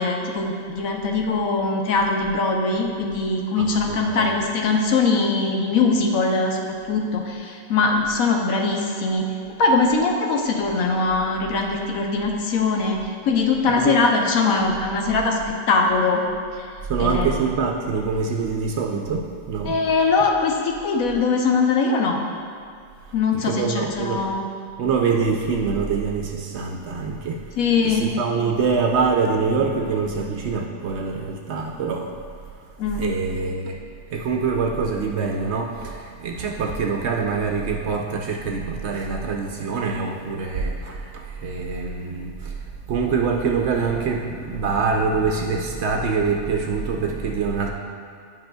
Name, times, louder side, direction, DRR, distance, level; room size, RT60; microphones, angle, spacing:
voice 1, 0.0-9.3 9.6-13.0 13.2-16.2 17.0-17.3 19.6-22.2 23.1-24.5 27.6-28.1 32.8-33.0, left 4 dB, 80° left, 1 dB, 1.2 m, -21 dB
voice 2, 3.6-4.4 13.7-14.0 16.8-19.8 23.4-24.3 24.8-27.5 27.8-32.1 32.9-33.8 34.1-47.7, right 5 dB, 65° right, 1 dB, 0.8 m, -25 dB
10.5 x 5.5 x 2.3 m, 2.3 s
omnidirectional pair, 1.5 m